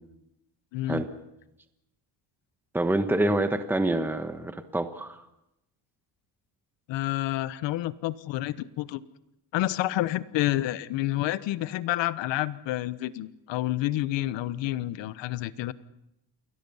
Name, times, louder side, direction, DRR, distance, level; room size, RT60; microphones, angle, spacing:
voice 1, 0.7-1.0 6.9-9.0 9.5-15.7, left 15 dB, 80° left, 15 dB, 1.2 m, -29 dB
voice 2, 2.7-5.2, right 1 dB, 5° right, 8 dB, 1.3 m, -26 dB
28.5 x 22.0 x 5.6 m, 0.86 s
cardioid pair, 145°, 43 cm